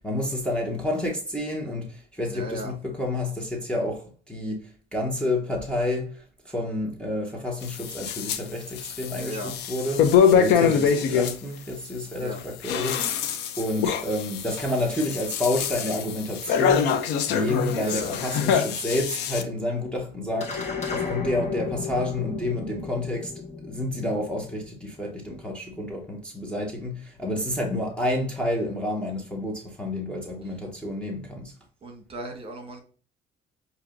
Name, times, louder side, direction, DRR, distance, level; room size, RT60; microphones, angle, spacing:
voice 1, 0.0-13.0 13.6-16.9 17.3-20.6 20.9-31.5, left 1 dB, 5° left, 1.1 m, -29 dB
voice 2, 2.3-2.7 9.2-9.5 12.2-12.4 17.7-18.2 30.4-30.6 31.8-32.8, right 1 dB, 35° right, 1.5 m, -36 dB
sound 1, 7.6-8.4 8.7-11.3 12.4-19.4, left 7 dB, 85° left, 0.6 m, -24 dB
sound 2, 20.4-25.0, left 5 dB, 40° left, 1.3 m, -34 dB
6.8 x 2.8 x 2.5 m
cardioid pair, 110°, 17 cm